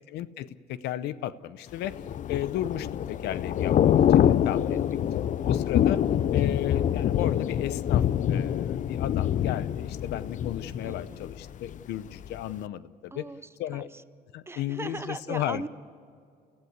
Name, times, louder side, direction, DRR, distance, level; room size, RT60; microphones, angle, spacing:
voice 1, 0.1-4.8 5.1-6.0 6.3-13.3 13.6-13.9 14.3-15.7, left 12 dB, 80° left, 16 dB, 0.8 m, -34 dB
Thunder / Rain, 1.8-11.8 12.1-12.4, left 10 dB, 50° left, 0.6 m, -25 dB
voice 2, 4.7-5.1 10.8-11.2 13.1-13.8 14.5-15.7, right 3 dB, 15° right, 13 dB, 0.8 m, -39 dB
29.0 x 15.5 x 8.1 m, 2.3 s
cardioid pair, 110°, 17 cm